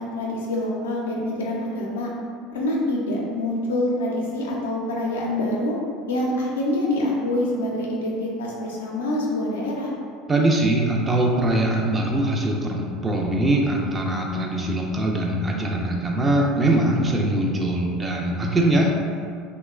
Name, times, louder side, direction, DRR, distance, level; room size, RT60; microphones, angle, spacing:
voice 1, 0.0-2.1 2.5-5.8 6.1-9.9, left 1 dB, 90° left, -3 dB, 0.5 m, -26 dB
voice 2, 10.3-18.9, right 1 dB, 25° right, -1 dB, 0.4 m, -22 dB
2.9 x 2.1 x 2.3 m, 2.2 s
hypercardioid pair, 80°, 0 cm